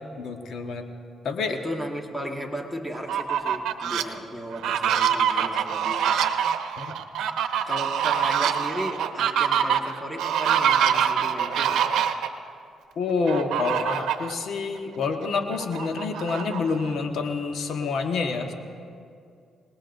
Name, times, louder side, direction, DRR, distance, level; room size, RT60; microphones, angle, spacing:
voice 1, 0.2-0.8 1.2-1.6 6.8-7.0 13.0-18.5, left 4 dB, 70° left, 5 dB, 1.3 m, -27 dB
voice 2, 1.5-6.2 7.6-11.8, equal, 5° left, 2 dB, 1.6 m, -35 dB
Fowl, 2.9-4.0 4.5-12.3 13.3-14.3 14.8-14.9 15.2-17.0, right 8 dB, 80° right, 0.8 m, -25 dB
26.0 x 19.5 x 2.7 m, 2.3 s
cardioid pair, 90°, 0 cm